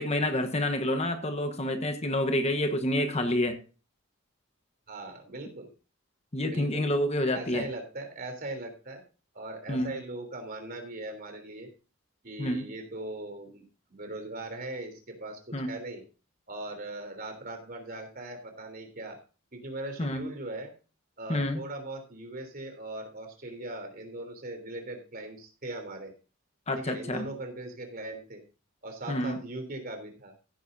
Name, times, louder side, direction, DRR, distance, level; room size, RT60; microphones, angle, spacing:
voice 1, 0.0-3.6 6.3-7.7 9.7-9.9 12.4-12.6 15.5-15.7 20.0-20.2 21.3-21.6 26.7-27.3 29.1-29.4, left 1 dB, 30° left, 7 dB, 1.1 m, -28 dB
voice 2, 4.9-5.7 6.5-6.9 7.3-9.0 9.3-11.7 12.2-13.6 13.9-16.0 16.5-19.2 19.5-20.7 21.2-26.1 26.7-28.4 28.8-30.3, right 2 dB, 45° right, 5 dB, 3.3 m, -39 dB
15.5 x 9.4 x 2.6 m, 0.34 s
head